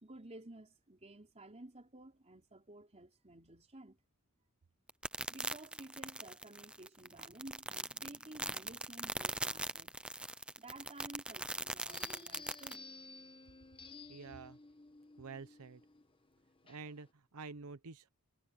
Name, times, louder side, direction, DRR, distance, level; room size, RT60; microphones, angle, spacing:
voice 1, 0.0-4.0 5.3-10.0 10.6-12.9, right 1 dB, 30° right, 4.3 m, -53 dB
sound 1, 4.9-12.8, right 2 dB, 5° right, 0.5 m, -40 dB
sound 2, 11.9-17.1, left 3 dB, 25° left, 1.2 m, -54 dB
voice 2, 14.1-14.6 15.2-15.8 16.6-18.1, right 4 dB, 75° right, 0.8 m, -48 dB
head